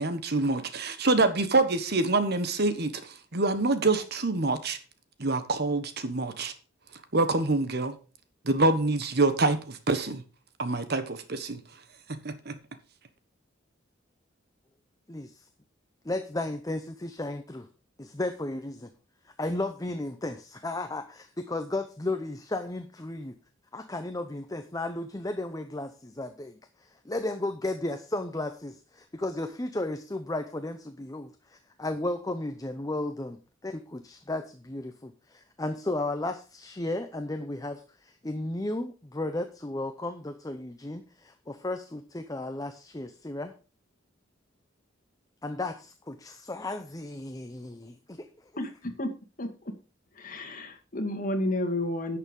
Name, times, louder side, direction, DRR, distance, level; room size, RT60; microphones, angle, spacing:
voice 1, 0.0-4.8 5.2-6.5 7.1-8.0 8.4-10.2 10.6-11.6 12.1-12.6, right 2 dB, 55° right, 1.2 m, -26 dB
voice 2, 15.1-15.5 16.0-17.7 18.0-18.9 19.2-23.4 23.7-43.5 45.4-48.5, left 2 dB, 20° left, 0.7 m, -34 dB
voice 3, 48.6-49.1 49.4-49.5 50.2-52.2, left 1 dB, 45° left, 2.1 m, -31 dB
11.0 x 6.7 x 5.3 m
head